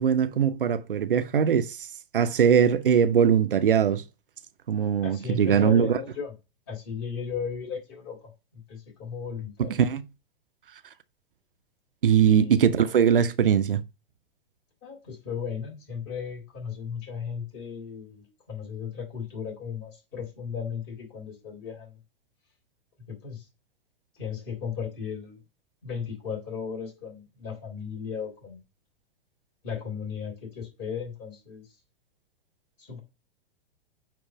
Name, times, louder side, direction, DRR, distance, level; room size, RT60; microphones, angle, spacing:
voice 1, 0.0-1.8 2.1-4.0 4.7-5.9 9.7-10.0 12.0-13.8, right 8 dB, 65° right, 0.8 m, -21 dB
voice 2, 5.0-6.3 6.7-9.8 12.2-12.7 14.8-21.9 23.1-23.4 24.2-25.4 25.8-28.6 29.6-31.6 32.8-33.0, left 6 dB, 35° left, 3.5 m, -36 dB
9.1 x 3.1 x 4.9 m
figure-of-eight pair, 105°, 29 cm